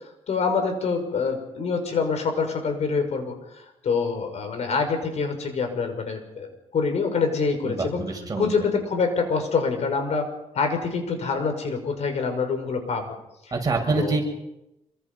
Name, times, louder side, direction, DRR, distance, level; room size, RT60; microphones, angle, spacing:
voice 1, 0.0-8.1 8.4-10.3 10.5-13.1 14.0-14.2, left 5 dB, 65° left, 6 dB, 5.9 m, -26 dB
voice 2, 7.6-8.5 13.5-14.2, right 3 dB, 30° right, 1 dB, 6.5 m, -25 dB
26.5 x 24.0 x 5.6 m, 0.89 s
cardioid pair, 105°, 12 cm